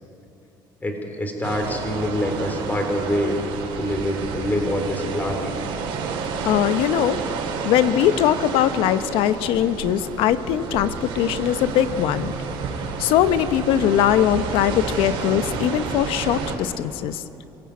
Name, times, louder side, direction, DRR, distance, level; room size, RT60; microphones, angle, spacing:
voice 1, 0.8-3.4 3.8-5.5, equal, 20° left, 4 dB, 3.7 m, -25 dB
sound 1, 1.4-16.5, right 5 dB, 80° right, 4.2 m, -30 dB
voice 2, 6.4-7.2 7.6-12.3 13.0-17.2, left 11 dB, 80° left, 12 dB, 1.0 m, -21 dB
25.5 x 16.5 x 8.5 m, 2.8 s
cardioid pair, 110°, 9 cm